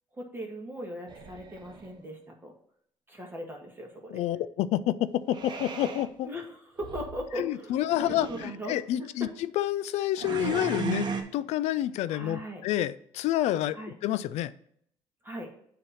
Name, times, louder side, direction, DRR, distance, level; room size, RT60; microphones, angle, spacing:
voice 1, 0.1-2.5 3.1-4.2 6.2-9.3 10.4-10.6 12.1-12.6 13.7-13.9 15.2-15.5, equal, 20° right, 1 dB, 1.5 m, -39 dB
sound 1, 1.1-1.9 5.3-6.1 6.8-7.2 7.9-8.5 10.2-11.2, right 5 dB, 40° right, 1.0 m, -35 dB
voice 2, 4.1-6.3 7.4-11.1 11.3-13.8 14.0-14.5, left 13 dB, 80° left, 16 dB, 0.4 m, -28 dB
7.9 x 2.9 x 5.6 m, 0.67 s
cardioid pair, 100°, 11 cm